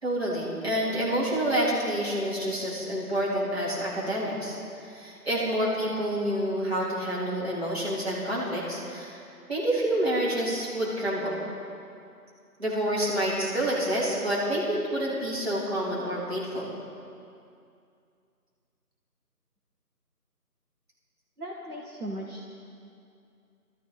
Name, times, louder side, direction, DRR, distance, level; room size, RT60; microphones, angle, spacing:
voice 1, 0.0-9.2 9.5-11.5 12.6-16.7, right 1 dB, 40° right, -7 dB, 3.7 m, -28 dB
voice 2, 21.4-22.5, right 1 dB, 70° right, -2 dB, 1.7 m, -37 dB
20.5 x 13.5 x 4.2 m, 2.5 s
figure-of-eight pair, 180°, 47 cm